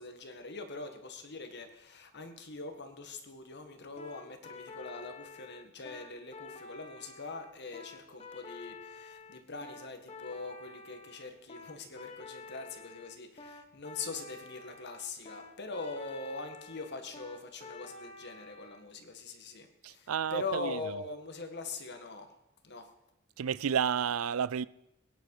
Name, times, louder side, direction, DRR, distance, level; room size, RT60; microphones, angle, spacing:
voice 1, 0.0-22.3 22.6-22.9, left 3 dB, 55° left, 1.9 m, -42 dB
sound 1, 4.0-18.8, left 4 dB, 30° left, 1.5 m, -49 dB
voice 2, 19.8-20.8 23.4-24.6, right 7 dB, 90° right, 0.4 m, -31 dB
22.0 x 10.0 x 4.9 m
head